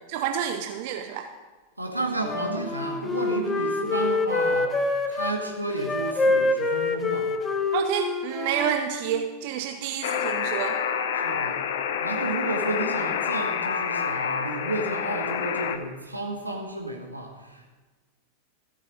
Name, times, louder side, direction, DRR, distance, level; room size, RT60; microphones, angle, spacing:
voice 1, 0.1-1.3 7.7-10.8, right 9 dB, 45° right, 6 dB, 0.6 m, -29 dB
voice 2, 1.8-7.4 11.1-11.7 12.0-17.7, right 2 dB, 85° right, 2 dB, 1.5 m, -32 dB
Wind instrument woodwind instrument, 2.2-5.4 5.8-9.2, left 3 dB, 20° left, 0.8 m, -26 dB
Alarm, 10.0-15.8, left 7 dB, 55° left, 0.7 m, -28 dB
14.5 x 6.4 x 5.3 m, 1.3 s
figure-of-eight pair, 90°, 0 cm